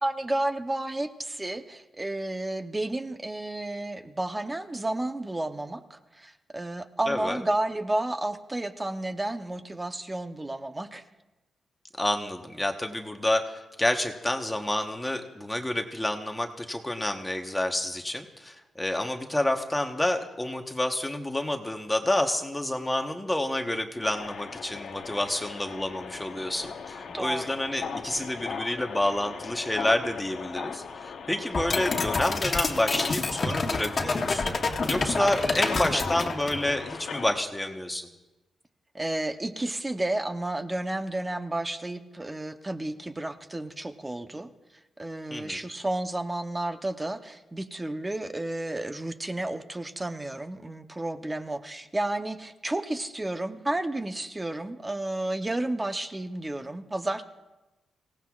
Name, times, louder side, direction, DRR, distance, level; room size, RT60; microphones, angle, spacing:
voice 1, 0.0-11.0 27.1-27.5 35.2-36.1 38.9-44.5 45.0-57.2, right 1 dB, 15° right, 8 dB, 0.8 m, -32 dB
voice 2, 7.1-7.4 12.0-34.6 34.9-38.1 45.3-45.6, left 1 dB, 10° left, 4 dB, 1.1 m, -29 dB
sound 1, 24.0-37.4, left 5 dB, 65° left, 0.9 m, -37 dB
sound 2, 31.5-36.7, left 3 dB, 40° left, 1.4 m, -28 dB
25.5 x 17.0 x 2.4 m, 1.1 s
cardioid pair, 115°, 0 cm